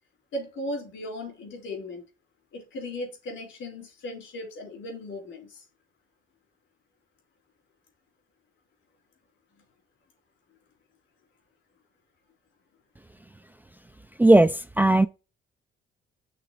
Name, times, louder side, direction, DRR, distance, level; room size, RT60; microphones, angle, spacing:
voice 1, 0.3-2.0 2.5-5.6, left 1 dB, 75° left, 3.4 m, -37 dB
voice 2, 14.2-15.1, right 1 dB, 10° right, 0.4 m, -17 dB
5.9 x 3.4 x 4.7 m
cardioid pair, 90°, 20 cm